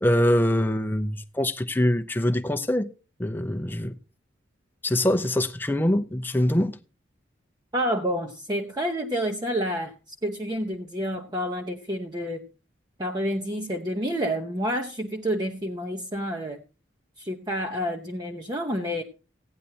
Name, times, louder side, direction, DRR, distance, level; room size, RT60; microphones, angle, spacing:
voice 1, 0.0-2.9 3.2-4.0 4.8-6.8, left 1 dB, 10° left, 0.7 m, -24 dB
voice 2, 7.7-12.4 13.0-16.6 17.2-19.0, equal, 20° right, 0.9 m, -29 dB
16.0 x 10.0 x 2.8 m
head